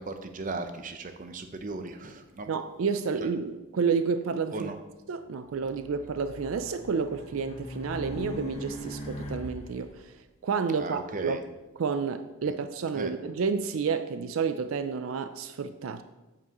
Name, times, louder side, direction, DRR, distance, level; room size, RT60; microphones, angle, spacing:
voice 1, 0.0-2.5 3.2-3.3 4.5-4.8 10.8-11.4 13.0-13.1, right 3 dB, 40° right, 0.7 m, -37 dB
voice 2, 2.5-4.7 5.1-10.1 10.4-11.4 11.8-16.0, right 5 dB, 75° right, 0.4 m, -30 dB
Race car auto racing, 5.6-9.9, equal, 30° left, 0.9 m, -40 dB
8.4 x 7.0 x 3.0 m
head